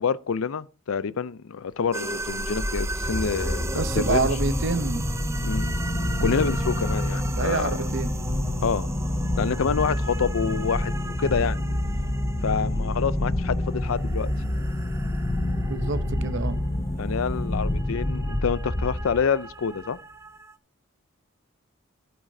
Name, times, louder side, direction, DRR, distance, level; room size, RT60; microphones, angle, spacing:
voice 1, 0.0-4.3 5.4-5.7 6.2-7.8 8.6-8.9 9.4-11.6 12.4-14.3 17.0-20.0, left 6 dB, 75° left, 0.5 m, -27 dB
sound 1, 1.9-20.6, right 2 dB, 15° right, 0.4 m, -38 dB
sound 2, 2.1-19.4, left 1 dB, 20° left, 0.8 m, -27 dB
voice 2, 3.8-5.0 6.2-6.4 7.4-8.1 15.7-16.6, right 4 dB, 55° right, 0.7 m, -27 dB
13.5 x 8.7 x 2.7 m
head